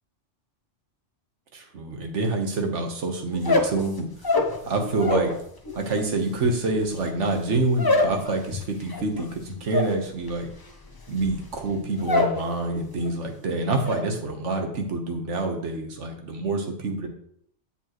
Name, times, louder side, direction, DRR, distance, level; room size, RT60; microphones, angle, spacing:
voice 1, 1.5-4.1 4.6-5.3 5.7-10.5 11.1-17.1, right 2 dB, 70° right, 4 dB, 1.5 m, -27 dB
sound 1, 3.3-5.4 5.7-12.4 12.7-13.2 13.5-14.0, left 3 dB, 20° left, 0.7 m, -26 dB
7.2 x 7.1 x 3.0 m, 0.67 s
omnidirectional pair, 1.3 m